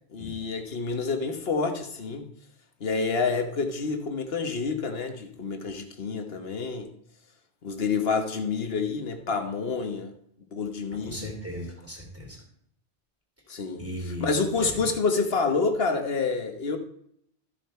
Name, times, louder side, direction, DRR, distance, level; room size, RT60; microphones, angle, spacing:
voice 1, 0.1-2.3 2.8-6.9 7.6-10.1 10.5-11.3 13.5-16.8, left 4 dB, 65° left, 6 dB, 1.4 m, -28 dB
voice 2, 11.0-12.4 13.8-14.3 14.6-14.9, equal, 10° right, -1 dB, 3.1 m, -37 dB
13.5 x 6.8 x 4.4 m, 0.70 s
omnidirectional pair, 1.1 m